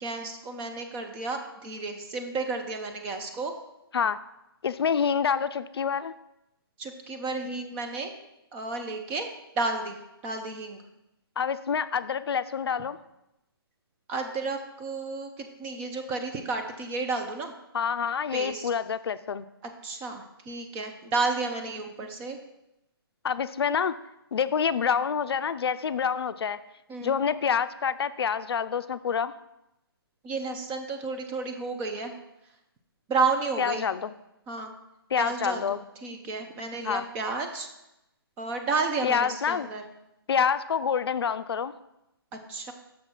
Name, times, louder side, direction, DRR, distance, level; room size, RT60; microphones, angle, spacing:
voice 1, 0.0-3.5 6.8-8.1 8.5-9.3 9.6-10.0 10.2-10.8 14.1-17.5 18.3-18.7 19.6-22.4 26.9-27.2 30.2-32.1 33.1-33.8 34.5-34.7 35.2-35.6 36.0-37.7 38.4-39.8 42.3-42.7, right 3 dB, 10° right, 5 dB, 0.4 m, -32 dB
voice 2, 4.6-6.1 11.4-13.0 17.7-19.4 23.2-24.0 24.3-26.6 27.0-29.3 33.6-34.1 35.1-35.8 36.8-37.0 39.0-39.7 40.3-41.7, left 7 dB, 80° left, 13 dB, 0.4 m, -27 dB
6.3 x 4.1 x 6.0 m, 0.88 s
hypercardioid pair, 160°, 13 cm